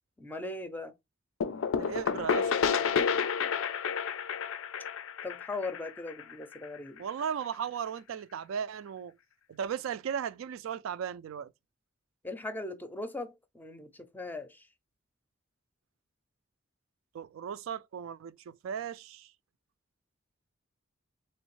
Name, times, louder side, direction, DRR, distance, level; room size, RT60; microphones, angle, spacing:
voice 1, 0.2-0.9 5.2-7.0 12.2-14.7, left 2 dB, 10° left, 0.4 m, -39 dB
sound 1, 1.4-7.0, left 6 dB, 85° left, 0.4 m, -30 dB
voice 2, 1.8-2.5 7.0-9.1 9.5-11.5 17.1-19.3, right 8 dB, 80° right, 0.3 m, -36 dB
3.5 x 3.1 x 3.0 m
head